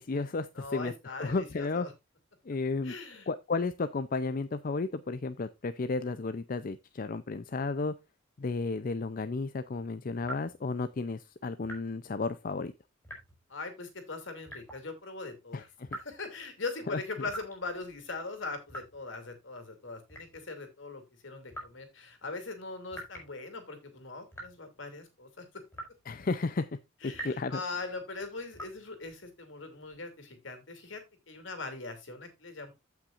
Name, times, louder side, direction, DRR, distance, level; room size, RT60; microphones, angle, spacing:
voice 1, 0.0-1.9 2.5-2.9 3.3-7.9 8.4-12.7 15.5-15.9 16.9-17.0 26.1-26.7 27.0-27.6, left 3 dB, 45° left, 0.5 m, -33 dB
voice 2, 0.5-1.9 2.8-3.3 13.5-15.7 16.0-25.5 27.0-31.0 31.3-32.7, left 3 dB, 65° left, 2.8 m, -41 dB
sound 1, 10.2-10.6 11.6-11.9 13.0-13.4 14.5-14.9 15.9-16.3 17.3-17.6 18.7-19.1 20.1-20.5 21.5-21.8 22.9-23.4 24.3-24.6 25.7-26.1 27.1-27.5 28.5-28.8, right 1 dB, 10° left, 4.8 m, -44 dB
15.0 x 6.0 x 2.5 m
head